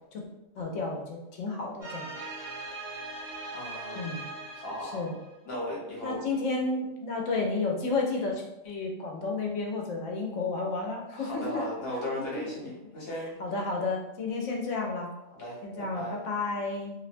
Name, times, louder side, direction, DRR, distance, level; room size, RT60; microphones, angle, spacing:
voice 1, 0.5-2.1 3.9-4.3 4.8-5.1 6.0-11.7 12.2-12.4 13.1-15.1 15.6-16.9, left 3 dB, 75° left, 0 dB, 0.9 m, -32 dB
sound 1, 1.8-5.3, right 2 dB, 65° right, 1.2 m, -40 dB
voice 2, 3.5-4.2 4.5-5.0 5.4-6.2 11.1-13.4 15.3-16.2, left 1 dB, 55° left, -5 dB, 1.1 m, -37 dB
2.6 x 2.1 x 2.5 m, 0.95 s
omnidirectional pair, 1.3 m